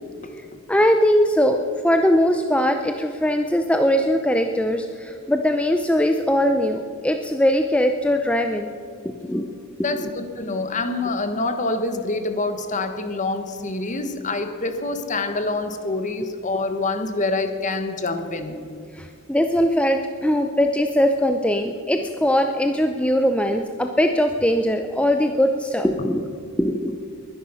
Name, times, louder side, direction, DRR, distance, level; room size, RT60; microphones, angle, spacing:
voice 1, 0.7-1.6 1.8-8.7 9.0-9.5 10.0-10.1 18.9-26.2 26.6-27.0, equal, 5° left, 5 dB, 0.5 m, -20 dB
voice 2, 9.8-18.6, left 2 dB, 35° left, 8 dB, 1.2 m, -26 dB
21.5 x 10.5 x 5.7 m, 2.4 s
head